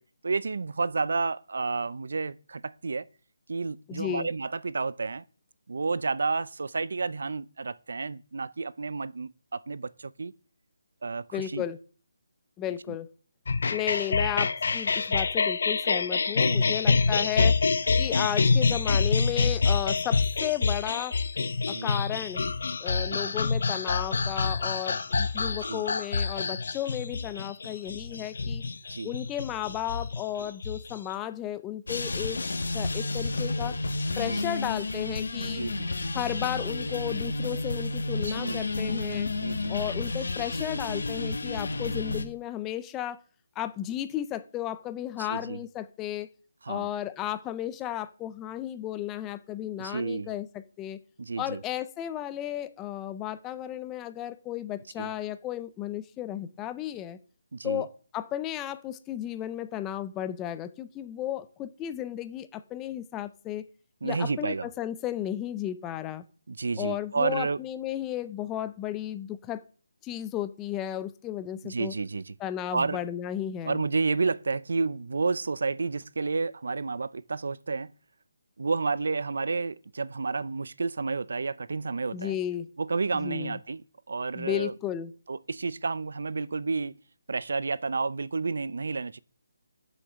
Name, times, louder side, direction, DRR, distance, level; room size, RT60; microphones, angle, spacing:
voice 1, 0.2-3.1 3.5-5.2 5.7-10.3 11.0-11.6 12.9-13.0 16.4-16.7 21.7-21.9 23.1-23.3 25.7-25.8 28.9-29.1 34.2-34.4 35.5-35.9 38.2-38.6 39.4-39.8 45.2-45.6 46.6-46.9 49.8-50.3 51.2-51.6 55.0-55.1 57.5-57.8 64.0-64.7 66.5-67.6 71.6-72.3 72.7-73.0 73.7-77.9 78.6-82.4 82.8-84.7 85.3-87.0 87.3-89.2, right 4 dB, 60° right, 0.5 m, -31 dB
voice 2, 3.9-4.3 11.3-11.8 12.6-13.1 13.7-17.6 18.0-21.2 21.7-22.4 22.8-28.7 29.0-32.4 32.7-33.8 34.2-35.6 36.1-39.3 39.7-43.2 43.6-46.3 46.7-51.0 51.4-57.2 57.6-57.9 58.1-63.6 64.0-66.2 66.8-69.6 70.0-71.9 72.4-73.8 82.1-82.7 83.1-83.6 84.3-85.1, left 12 dB, 10° left, 0.4 m, -34 dB
sound 1, 13.5-31.1, left 4 dB, 50° left, 0.7 m, -26 dB
sound 2, 31.9-42.3, left 2 dB, 75° left, 1.6 m, -31 dB
8.0 x 7.2 x 6.8 m
hypercardioid pair, 175°, 0 cm